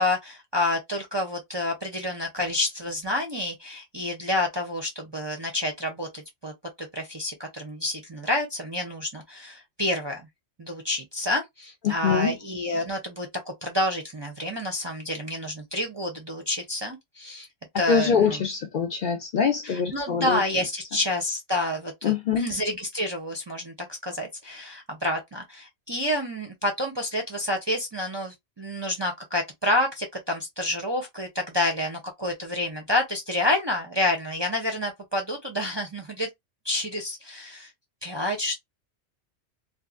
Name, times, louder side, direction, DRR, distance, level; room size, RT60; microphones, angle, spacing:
voice 1, 0.0-6.5 6.8-10.2 10.6-13.3 13.6-17.5 17.8-18.4 19.6-36.3 36.6-37.7 38.0-38.6, left 1 dB, 35° right, 0.5 m, -29 dB
voice 2, 11.8-12.3 17.9-20.4 22.0-22.5, left 7 dB, 60° left, 0.6 m, -24 dB
2.9 x 2.3 x 2.4 m
omnidirectional pair, 1.2 m